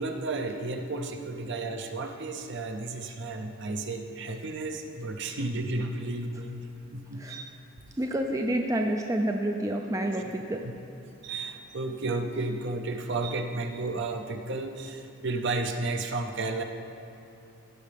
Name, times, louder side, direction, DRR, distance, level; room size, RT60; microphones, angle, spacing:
voice 1, 0.0-6.6 6.9-7.4 10.1-10.2 10.6-10.7 11.2-16.6, right 2 dB, 55° right, 5 dB, 0.6 m, -32 dB
voice 2, 8.0-10.6, right 1 dB, 15° right, 3 dB, 0.3 m, -28 dB
15.5 x 6.5 x 3.4 m, 2.8 s
head